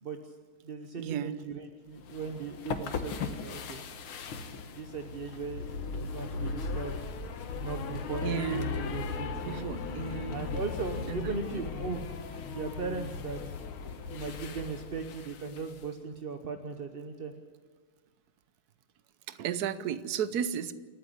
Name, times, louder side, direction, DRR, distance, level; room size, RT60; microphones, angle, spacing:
voice 1, 0.0-0.3 0.6-3.8 4.7-7.0 7.5-9.7 10.3-12.1 12.5-13.4 13.8-17.3, right 4 dB, 40° right, 5 dB, 0.9 m, -38 dB
voice 2, 1.0-1.4 8.2-8.7 9.4-10.5 11.1-11.6 19.3-20.7, right 9 dB, 60° right, 14 dB, 1.2 m, -34 dB
sound 1, 2.0-15.9, left 5 dB, 80° left, 2.1 m, -37 dB
28.0 x 9.5 x 9.9 m, 1.5 s
omnidirectional pair, 2.3 m